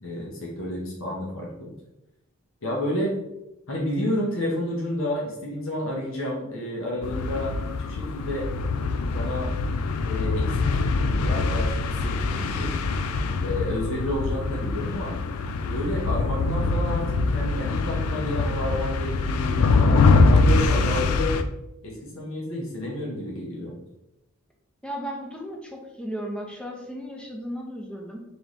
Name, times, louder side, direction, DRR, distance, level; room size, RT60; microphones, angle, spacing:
voice 1, 0.0-1.7 2.6-3.1 3.7-7.5 7.9-8.5 9.1-9.5 10.0-10.8 11.2-12.8 13.4-15.2 15.6-21.4 21.8-23.7, left 1 dB, 65° left, -4 dB, 0.9 m, -30 dB
sound 1, 7.0-21.4, left 3 dB, 90° left, 0.4 m, -23 dB
voice 2, 24.8-28.2, equal, 5° left, 0 dB, 0.6 m, -35 dB
3.3 x 3.1 x 3.9 m, 0.89 s
head